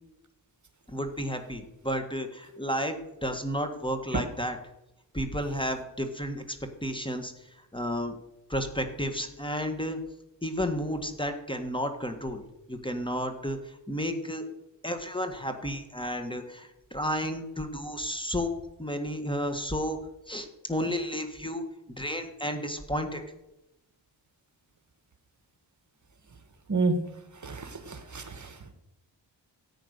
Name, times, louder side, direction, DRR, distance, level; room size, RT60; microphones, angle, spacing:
voice 1, 0.9-4.6 5.1-8.2 8.5-10.0 10.4-12.4 12.7-14.4 14.8-18.5 18.8-20.0 20.3-21.6 22.0-23.2, equal, 10° left, 7 dB, 1.6 m, -32 dB
voice 2, 26.7-27.0 27.4-28.7, right 3 dB, 40° right, 9 dB, 1.5 m, -30 dB
14.0 x 8.9 x 6.7 m, 0.91 s
wide cardioid pair, 95°, 44 cm